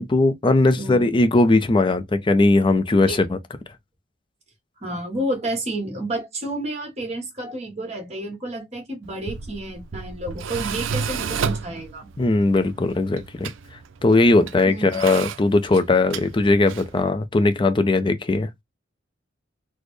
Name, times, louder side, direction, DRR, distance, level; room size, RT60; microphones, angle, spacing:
voice 1, 0.0-3.4 12.2-13.5 14.0-18.5, left 2 dB, 25° left, 0.4 m, -19 dB
voice 2, 0.8-1.1 3.1-3.3 4.8-12.1 14.7-15.0, right 1 dB, 35° right, 1.4 m, -30 dB
Tools, 9.0-17.0, right 6 dB, 80° right, 0.4 m, -32 dB
4.1 x 2.1 x 3.1 m
head